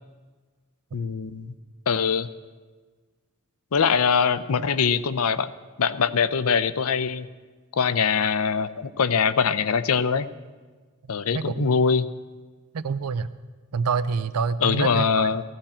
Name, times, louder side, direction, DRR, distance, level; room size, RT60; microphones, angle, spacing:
voice 1, 0.9-1.5 1.9-2.3 3.7-5.5 5.8-7.3 7.7-10.3 11.1-12.1 14.6-15.4, left 6 dB, 70° left, 13 dB, 0.6 m, -23 dB
voice 2, 11.3-11.7 12.7-13.3 13.7-15.3, right 5 dB, 85° right, 13 dB, 0.5 m, -27 dB
15.5 x 14.5 x 4.4 m, 1.4 s
head